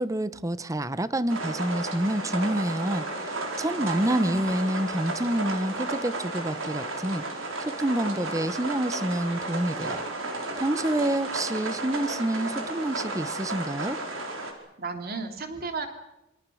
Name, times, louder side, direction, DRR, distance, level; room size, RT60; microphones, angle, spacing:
voice 1, 0.0-7.2 7.7-10.0 10.6-14.0, right 1 dB, 15° right, 14 dB, 0.9 m, -28 dB
sound 1, 1.3-14.5, right 2 dB, 80° right, 4.8 m, -33 dB
voice 2, 3.8-4.5 14.8-15.9, right 4 dB, 50° right, 5 dB, 3.3 m, -35 dB
27.5 x 24.0 x 6.3 m, 0.90 s
head